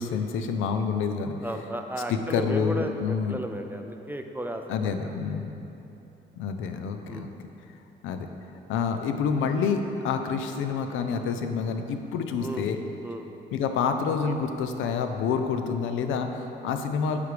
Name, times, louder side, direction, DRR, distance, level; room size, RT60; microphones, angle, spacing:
voice 1, 0.0-1.3 2.1-3.4 4.7-5.5 6.4-7.4 8.0-8.3 8.7-12.8 13.5-17.2, left 6 dB, 85° left, 6 dB, 0.5 m, -28 dB
voice 2, 1.4-5.6 7.1-7.3 12.4-12.7 13.0-13.3 16.3-16.5, right 1 dB, 10° right, 4 dB, 0.4 m, -35 dB
8.2 x 3.5 x 4.8 m, 2.9 s
cardioid pair, 90°, 20 cm